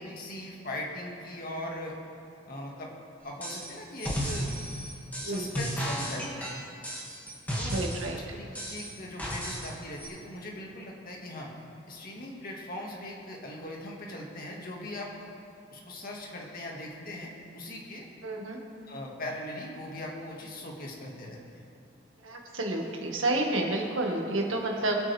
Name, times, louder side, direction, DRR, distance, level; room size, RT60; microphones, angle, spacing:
voice 1, 0.0-2.0 2.5-2.9 3.2-4.6 5.2-6.5 7.5-7.8 8.3-11.5 11.9-15.3 15.7-18.1 18.9-21.6, left 1 dB, 45° left, -2 dB, 2.1 m, -40 dB
sound 1, 3.4-3.7 4.0-8.1 8.5-9.7 10.0-10.1, equal, 10° left, 2.3 m, -34 dB
voice 2, 7.7-8.2 18.2-18.6 22.2-25.0, right 2 dB, 75° right, 0 dB, 1.9 m, -30 dB
23.0 x 8.7 x 3.5 m, 2.5 s
head